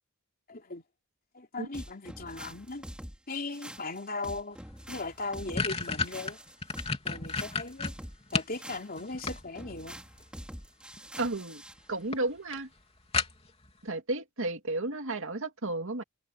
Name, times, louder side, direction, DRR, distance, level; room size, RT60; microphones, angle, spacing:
voice 1, 0.5-0.8 1.3-2.8 3.3-4.6 4.9-6.4 7.0-7.9 8.3-10.0, left 3 dB, 45° left, 3.3 m, -38 dB
sound 1, 1.7-11.8, equal, 5° right, 3.0 m, -45 dB
sound 2, 4.7-4.8 5.1-8.6 9.0-9.8 10.9-11.3 11.7-11.8 12.1-12.2 12.5-12.6 13.1-13.7, left 4 dB, 30° left, 3.4 m, -32 dB
voice 2, 11.2-11.6 11.9-12.7 13.8-16.0, right 2 dB, 65° right, 2.2 m, -33 dB
head